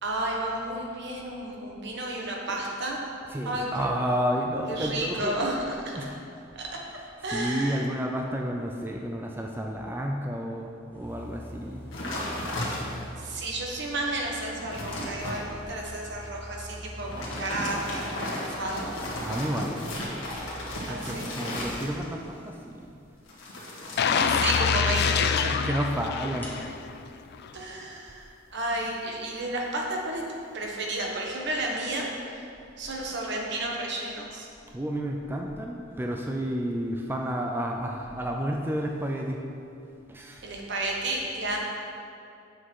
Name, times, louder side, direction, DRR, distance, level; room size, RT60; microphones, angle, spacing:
voice 1, 0.0-3.0 3.4-3.9 4.7-6.0 6.5-6.8 7.2-7.9 13.2-18.9 20.9-21.3 24.0-25.5 27.5-30.2 30.5-32.5 32.8-34.5 40.4-41.6, right 1 dB, 65° right, -1 dB, 1.3 m, -32 dB
voice 2, 3.3-5.4 6.0-6.2 7.3-11.8 19.2-19.7 20.9-22.9 23.9-24.3 25.5-26.5 34.7-39.5 40.1-40.5, equal, 10° right, 1 dB, 0.4 m, -31 dB
sound 1, 10.9-22.6 26.4-27.3, equal, 10° left, 1.2 m, -45 dB
sound 2, 11.9-13.2 13.7-13.8 14.3-15.4 17.0-22.2 23.3-25.0 25.2-25.6, left 1 dB, 80° left, 1.6 m, -35 dB
sound 3, 24.0-26.9 27.3-27.5, left 6 dB, 55° left, 0.4 m, -25 dB
7.5 x 6.3 x 4.7 m, 2.5 s
head